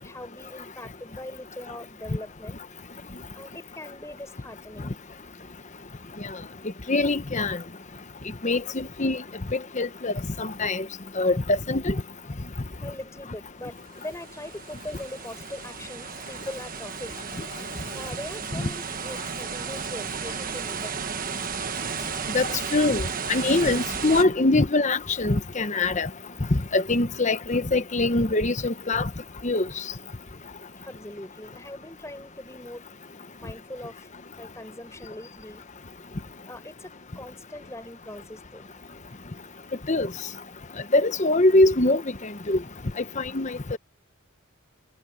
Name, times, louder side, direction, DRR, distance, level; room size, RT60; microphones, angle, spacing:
voice 1, 0.0-2.6 3.3-5.0 5.4-5.5 12.8-17.4 17.9-21.5 30.8-32.8 33.4-34.1 34.3-35.6 36.5-38.7, left 1 dB, 15° left, 6.2 m, -41 dB
voice 2, 6.9-7.6 8.4-9.2 9.5-10.8 11.2-12.0 18.5-18.7 22.3-26.1 26.5-29.1 29.4-29.7 39.9-40.1 40.9-42.6 43.0-43.8, left 2 dB, 35° left, 1.0 m, -23 dB
sound 1, 14.0-24.2, right 6 dB, 40° right, 1.3 m, -34 dB
head